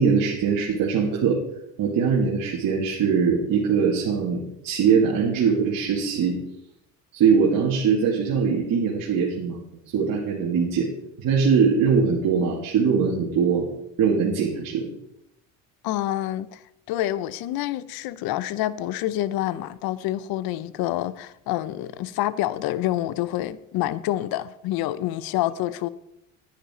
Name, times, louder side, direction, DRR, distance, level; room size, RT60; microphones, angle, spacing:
voice 1, 0.0-1.4 1.8-6.4 7.1-9.6 9.9-10.9 11.2-13.7 14.0-14.9, right 6 dB, 55° right, 2.3 m, -22 dB
voice 2, 15.8-16.6 16.9-25.9, left 14 dB, 65° left, 0.7 m, -27 dB
10.0 x 9.7 x 4.4 m
supercardioid pair, 90°, 39 cm